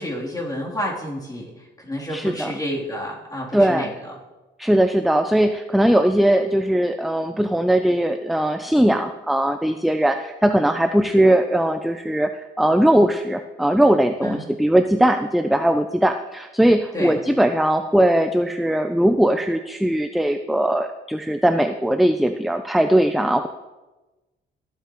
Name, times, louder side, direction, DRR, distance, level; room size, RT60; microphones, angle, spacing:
voice 1, 0.0-4.1 14.2-14.5 16.9-17.2, equal, 20° left, -4 dB, 3.3 m, -30 dB
voice 2, 2.1-2.5 3.5-3.9 4.6-23.5, right 1 dB, ahead, 7 dB, 0.5 m, -19 dB
14.5 x 8.3 x 3.1 m, 1.1 s
cardioid pair, 90°, 20 cm